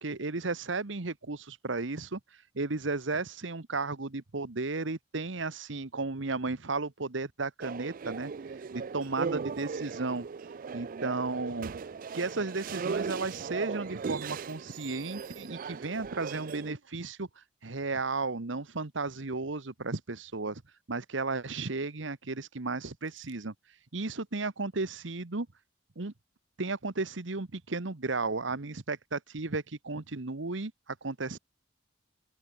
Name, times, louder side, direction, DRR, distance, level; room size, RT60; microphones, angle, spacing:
voice 1, 0.0-2.2 2.5-8.3 8.7-10.3 10.7-11.7 12.1-20.6 20.9-23.5 23.9-25.5 26.0-26.1 26.6-31.4, right 3 dB, 65° right, 1.2 m, -34 dB
sound 1, 7.6-16.7, right 5 dB, 45° right, 0.4 m, -38 dB
open air
head